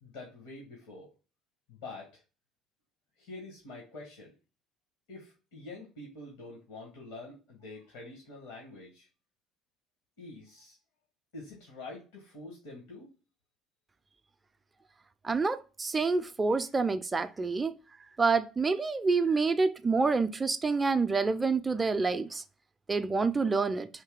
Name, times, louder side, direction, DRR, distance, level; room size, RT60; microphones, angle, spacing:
voice 1, 0.0-1.1 1.7-2.2 3.2-4.3 5.1-9.1 10.2-10.8 11.3-13.1, left 2 dB, 70° left, 1.0 m, -46 dB
voice 2, 15.2-17.7 18.2-22.4 22.9-23.9, right 4 dB, 25° right, 0.3 m, -27 dB
3.2 x 2.8 x 3.6 m
figure-of-eight pair, 55°, 0 cm